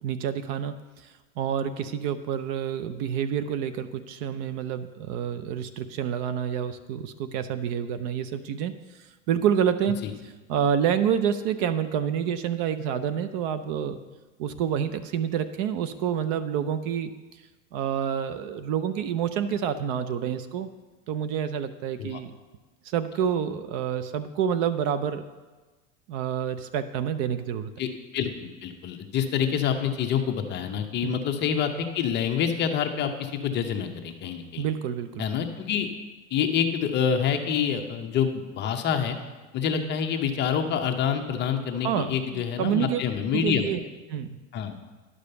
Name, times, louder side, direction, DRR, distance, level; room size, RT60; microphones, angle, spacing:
voice 1, 0.0-0.7 1.4-8.7 9.3-10.1 10.5-14.0 14.4-17.1 17.7-20.7 21.1-22.3 22.8-25.3 26.1-27.7 31.0-31.1 34.6-35.3 41.8-43.0 43.3-43.8 44.1-44.4, right 8 dB, 45° right, 12 dB, 0.6 m, -28 dB
voice 2, 27.8-34.6 35.2-35.9 36.3-39.2 39.5-43.7 44.5-44.8, left 8 dB, 25° left, 5 dB, 0.7 m, -27 dB
11.0 x 5.1 x 6.7 m, 1.2 s
supercardioid pair, 145°, 39 cm